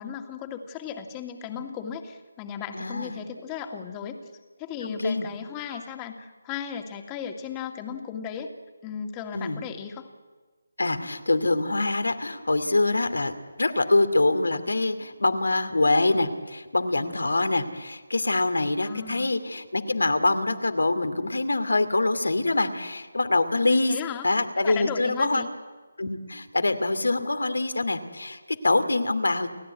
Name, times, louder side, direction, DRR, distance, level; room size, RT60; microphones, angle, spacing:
voice 1, 0.0-4.2 4.6-8.5 8.8-10.1 18.8-19.3 23.7-24.3 24.6-25.5, left 7 dB, 20° left, 5 dB, 2.2 m, -36 dB
voice 2, 2.7-3.2 4.8-5.3 9.3-9.6 10.8-23.9 24.2-25.4 26.0-29.5, left 2 dB, 80° left, 10 dB, 2.6 m, -25 dB
30.0 x 15.5 x 9.5 m, 1.3 s
figure-of-eight pair, 155°, 0 cm